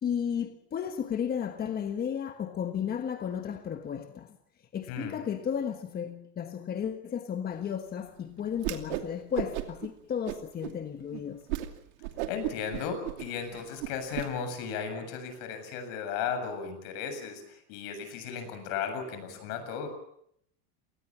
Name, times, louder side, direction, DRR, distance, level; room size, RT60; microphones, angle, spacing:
voice 1, 0.0-4.4 4.7-11.4, left 8 dB, 25° left, 1.4 m, -33 dB
Whoosh swoosh swish, 8.6-9.1 9.3-9.9 10.2-10.7 11.1-11.2 11.5-11.7 12.0-14.2, right 15 dB, 90° right, 2.8 m, -34 dB
voice 2, 12.3-19.9, left 6 dB, 65° left, 7.5 m, -35 dB
28.0 x 20.0 x 7.4 m
cardioid pair, 145°, 34 cm